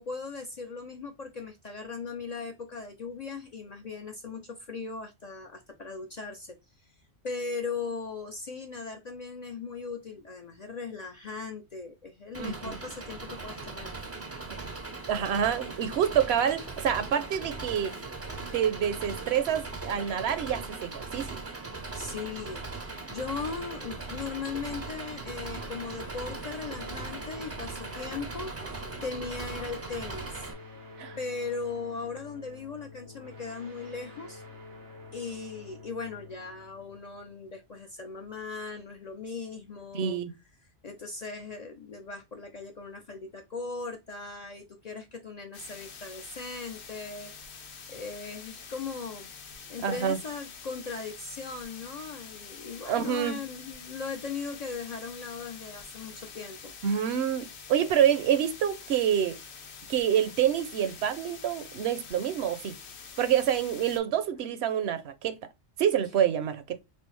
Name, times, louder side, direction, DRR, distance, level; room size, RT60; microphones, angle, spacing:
voice 1, 0.0-6.9 7.2-13.9 21.9-30.5 31.2-34.4 35.1-40.2 40.8-47.3 47.9-49.3 49.7-56.7, left 4 dB, 50° left, 0.5 m, -38 dB
Engine, 12.3-30.5, right 3 dB, 25° right, 0.3 m, -39 dB
voice 2, 12.4-12.8 15.1-18.0 18.5-21.3 31.0-31.2 39.9-40.3 49.8-50.2 52.9-53.4 56.8-59.4 59.9-62.8 63.2-65.4 65.8-66.8, right 9 dB, 70° right, 0.8 m, -27 dB
sound 1, 24.5-37.9, left 3 dB, 90° right, 1.5 m, -48 dB
sound 2, 45.5-64.0, left 6 dB, 75° left, 1.0 m, -46 dB
3.3 x 2.7 x 3.0 m
omnidirectional pair, 1.1 m